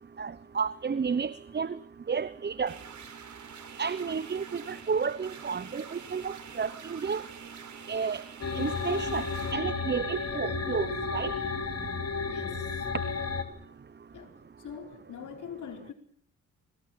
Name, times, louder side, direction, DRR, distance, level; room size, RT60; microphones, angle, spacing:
voice 1, 0.2-1.8 2.1-2.8 3.8-7.2 7.9-8.2 8.5-9.3 9.5-11.3, right 5 dB, 35° right, 1.0 m, -31 dB
sound 1, 2.7-9.5, right 6 dB, 65° right, 5.1 m, -47 dB
sound 2, 8.4-13.4, left 4 dB, 50° left, 3.4 m, -32 dB
voice 2, 12.2-12.9 14.1-14.3 14.6-15.9, left 7 dB, 70° left, 4.8 m, -43 dB
25.0 x 19.5 x 8.8 m
cardioid pair, 65°, 31 cm